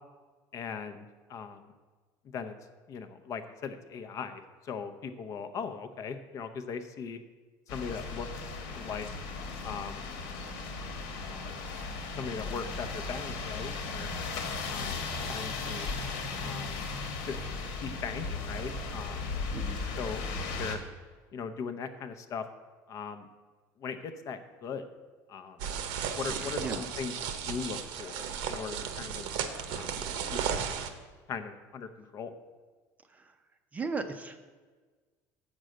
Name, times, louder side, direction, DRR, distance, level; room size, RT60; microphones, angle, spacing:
voice 1, 0.5-1.0 1.3-1.7 2.2-2.5 2.9-7.2 7.7-9.1 9.6-10.1 11.1-11.5 12.1-14.1 14.7-15.9 16.4-16.8 17.2-17.4 17.8-19.3 20.0-20.2 20.5-20.8 21.3-22.5 22.9-23.3 23.8-24.8 25.3-25.6 26.1-29.3 29.7-29.9 30.3-30.6 31.3-32.3, left 6 dB, 40° left, 9 dB, 0.7 m, -39 dB
sound 1, 7.7-20.8, left 4 dB, 80° left, 1.4 m, -36 dB
voice 2, 19.5-19.8 26.6-26.8 33.1-33.4 33.7-34.4, right 4 dB, 20° right, 8 dB, 0.5 m, -36 dB
sound 2, 25.6-30.9, right 7 dB, 75° right, 0.9 m, -35 dB
7.8 x 6.2 x 6.4 m, 1.4 s
cardioid pair, 145°, 8 cm